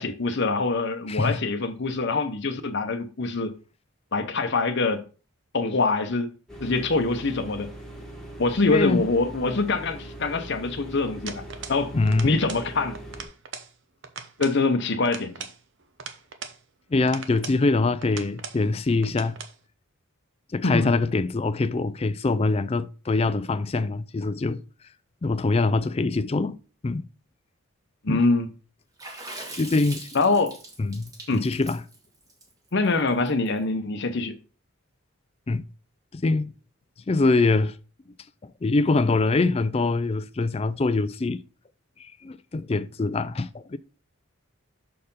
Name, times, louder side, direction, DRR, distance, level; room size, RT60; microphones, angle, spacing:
voice 1, 0.0-3.5 4.1-5.0 5.5-6.3 6.6-7.7 8.4-11.9 12.2-13.0 14.4-15.3 20.6-21.0 28.0-28.5 30.1-30.6 31.3-31.4 32.7-34.3, left 3 dB, 50° left, 0.8 m, -24 dB
voice 2, 1.1-1.4 8.7-9.0 11.9-12.3 16.9-19.4 20.5-24.6 25.2-26.6 26.8-27.0 28.1-28.2 29.6-30.1 30.8-31.8 35.5-35.6 36.1-36.5 37.1-37.7 38.6-41.4 42.0-43.8, left 3 dB, 25° left, 0.4 m, -24 dB
sound 1, 6.5-13.2, right 1 dB, ahead, 1.5 m, -41 dB
sound 2, 11.3-11.8 12.1-12.7 12.9-13.7 14.0-14.6 15.0-16.6 17.1-17.6 18.0-18.6 19.0-19.5, right 6 dB, 55° right, 0.9 m, -39 dB
Water / Splash splatter, 29.0-33.5, right 2 dB, 15° right, 1.3 m, -41 dB
6.5 x 4.4 x 5.4 m
head